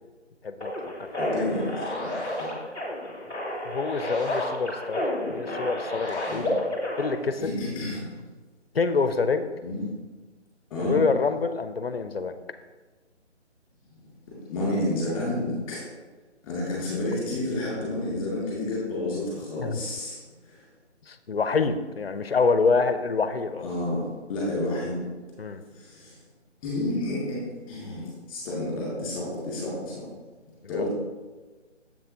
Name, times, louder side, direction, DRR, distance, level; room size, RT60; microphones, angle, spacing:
sound 1, 0.6-7.1, left 1 dB, 5° right, 0.7 m, -31 dB
voice 1, 1.2-2.1 2.4-2.5 6.2-6.5 7.4-8.1 9.6-9.8 10.7-11.0 14.3-15.8 16.4-20.2 20.4-20.6 23.6-25.0 25.7-26.2 26.6-27.4 27.7-30.1 30.7-30.9, left 1 dB, 15° left, -6 dB, 2.3 m, -30 dB
voice 2, 3.6-5.0 5.3-6.4 7.0-7.5 8.7-9.5 10.8-12.3 19.6-19.8 21.1-23.7 25.4-25.6 30.7-30.9, left 4 dB, 55° left, 11 dB, 0.5 m, -26 dB
7.5 x 7.3 x 2.8 m, 1.3 s
figure-of-eight pair, 150°, 36 cm